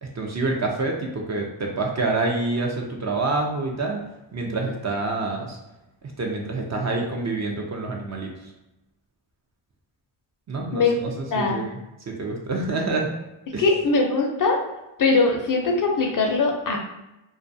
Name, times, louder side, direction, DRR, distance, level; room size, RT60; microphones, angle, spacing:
voice 1, 0.0-4.0 4.3-5.6 6.2-8.3 10.5-11.8 12.1-13.1 13.5-13.6, right 3 dB, 35° right, 0 dB, 0.5 m, -27 dB
voice 2, 10.7-11.6 13.6-14.6 15.0-16.8, left 3 dB, 45° left, 2 dB, 0.5 m, -21 dB
2.3 x 2.3 x 2.6 m, 0.95 s
cardioid pair, 70°, 48 cm